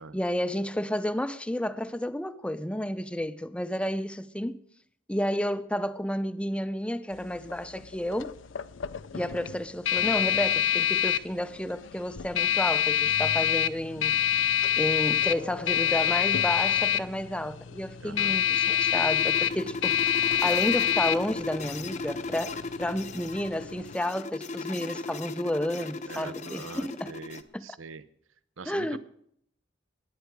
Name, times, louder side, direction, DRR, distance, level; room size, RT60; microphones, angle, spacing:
voice 1, 0.0-4.6 5.1-8.4 9.1-14.1 14.8-27.1 27.5-27.6 28.7-29.0, left 1 dB, 5° left, 0.5 m, -31 dB
sound 1, 7.1-24.0, left 9 dB, 70° left, 0.5 m, -27 dB
sound 2, 18.0-27.4, left 3 dB, 35° left, 0.8 m, -37 dB
voice 2, 18.0-18.4 26.1-28.0 28.6-29.0, right 4 dB, 80° right, 0.7 m, -43 dB
21.0 x 9.4 x 4.7 m
head